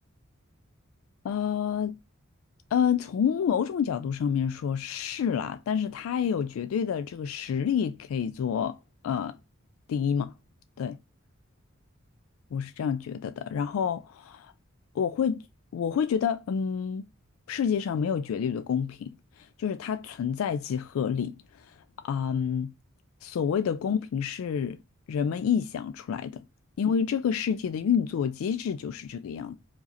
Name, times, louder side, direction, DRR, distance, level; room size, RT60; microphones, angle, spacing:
voice 1, 1.2-2.0 2.7-8.8 9.0-9.4 9.9-10.3 10.8-11.0 12.5-14.5 14.9-15.4 15.7-17.1 17.5-21.8 22.0-22.7 23.2-24.8 25.1-26.4 26.8-29.6, left 7 dB, 85° left, 0.3 m, -28 dB
4.8 x 2.8 x 4.0 m
head